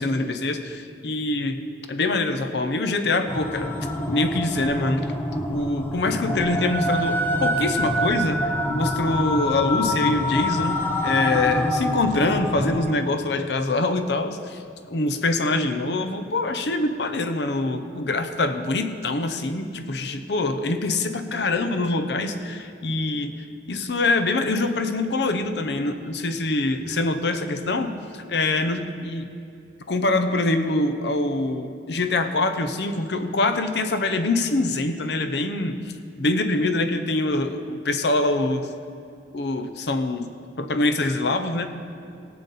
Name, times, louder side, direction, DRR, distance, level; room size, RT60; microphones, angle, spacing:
voice 1, 0.0-1.6 1.9-3.7 4.1-5.1 5.5-14.6 14.9-29.3 29.9-35.8 36.2-38.7 39.3-40.3 40.6-41.7, left 2 dB, 65° left, 8 dB, 0.8 m, -24 dB
sound 1, 3.3-12.8, left 1 dB, 10° left, 0.8 m, -26 dB
17.0 x 8.4 x 4.2 m, 2.5 s
head